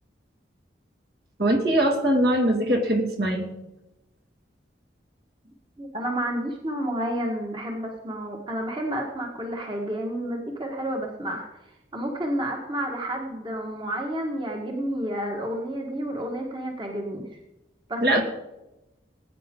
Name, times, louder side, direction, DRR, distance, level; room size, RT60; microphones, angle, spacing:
voice 1, 1.4-3.5 18.0-18.2, right 1 dB, 55° right, 2 dB, 2.4 m, -22 dB
voice 2, 5.8-11.6 11.9-17.4 17.9-18.2, right 1 dB, 25° right, 0 dB, 1.7 m, -30 dB
19.0 x 9.4 x 3.8 m, 0.94 s
head